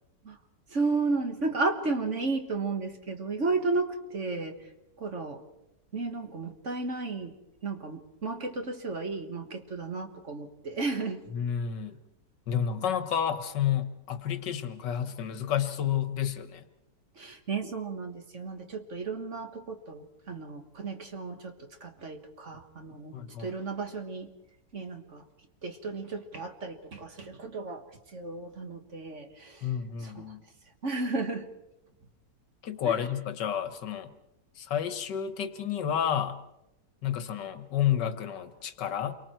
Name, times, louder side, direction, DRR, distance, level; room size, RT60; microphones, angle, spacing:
voice 1, 0.7-4.6 5.0-5.4 5.9-7.3 7.6-11.2 17.2-23.1 23.4-24.3 24.7-25.2 25.6-27.8 28.1-29.7 30.0-30.3 30.8-31.5 32.9-33.0, right 3 dB, 45° right, 6 dB, 1.8 m, -33 dB
voice 2, 11.3-12.0 12.5-16.6 23.1-23.5 29.6-30.4 32.6-34.1 34.6-36.4 37.0-39.2, left 9 dB, 75° left, 10 dB, 1.8 m, -30 dB
29.0 x 24.0 x 4.5 m, 0.91 s
omnidirectional pair, 1.9 m